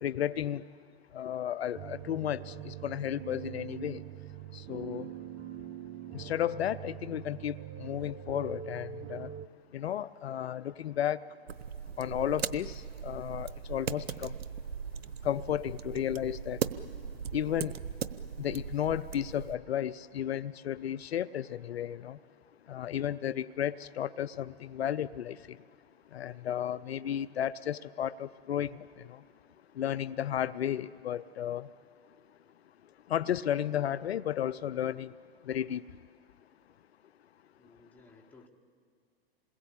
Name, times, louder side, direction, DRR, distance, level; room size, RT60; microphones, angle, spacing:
voice 1, 0.0-0.6 1.1-4.0 4.5-5.1 6.1-9.3 9.7-11.2 12.0-14.3 15.2-16.6 17.3-17.8 18.4-22.2 22.7-25.4 26.1-28.8 29.8-31.7 33.1-35.1 35.5-35.8, left 10 dB, 80° left, 17 dB, 0.6 m, -33 dB
sound 1, 1.7-9.5, right 10 dB, 40° right, 1.1 m, -43 dB
sound 2, 11.5-19.6, right 7 dB, 75° right, 1.0 m, -39 dB
voice 2, 37.6-38.5, left 3 dB, 5° left, -1 dB, 3.3 m, -57 dB
27.5 x 21.5 x 8.3 m, 2.2 s
hypercardioid pair, 105°, 31 cm